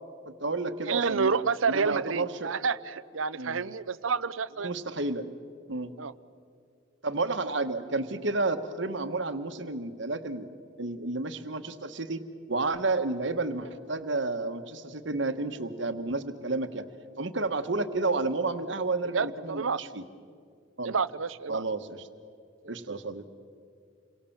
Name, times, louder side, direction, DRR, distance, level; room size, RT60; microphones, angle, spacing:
voice 1, 0.2-1.3 1.7-2.5 3.3-3.6 4.6-5.3 5.7-5.9 7.0-10.5 10.8-16.8 17.2-20.0 20.8-21.0 21.5-22.1 22.7-23.2, right 3 dB, 60° right, 9 dB, 1.3 m, -31 dB
voice 2, 0.8-4.7 6.0-6.1 19.1-19.8 20.8-21.6 22.6-22.8, right 5 dB, 80° right, 16 dB, 0.7 m, -29 dB
28.5 x 23.0 x 7.3 m, 2.3 s
head